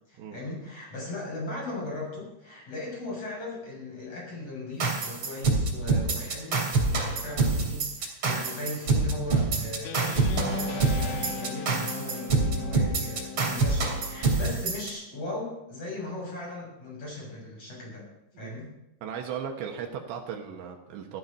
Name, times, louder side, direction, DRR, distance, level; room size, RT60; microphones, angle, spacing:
voice 1, 0.1-18.1 18.4-18.7, left 2 dB, 35° left, -3 dB, 7.6 m, -38 dB
sound 1, 4.8-14.9, right 3 dB, 35° right, 2.9 m, -26 dB
Guitar, 9.8-14.6, left 5 dB, 80° left, 1.9 m, -38 dB
voice 2, 19.0-21.2, right 7 dB, 80° right, 3 dB, 3.5 m, -36 dB
15.5 x 12.5 x 5.4 m, 0.90 s
omnidirectional pair, 5.2 m